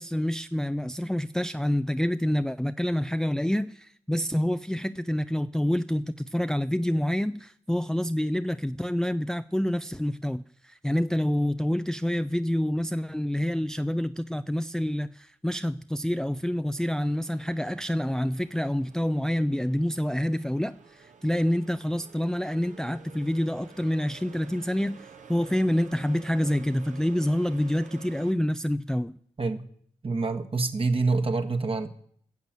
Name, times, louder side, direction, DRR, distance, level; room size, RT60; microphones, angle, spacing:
voice 1, 0.0-29.1, equal, 5° left, 0.4 m, -27 dB
sound 1, 16.8-28.3, right 6 dB, 65° right, 1.2 m, -51 dB
voice 2, 30.0-31.9, right 3 dB, 45° right, 1.5 m, -26 dB
15.0 x 7.5 x 7.6 m
supercardioid pair, 45°, 14 cm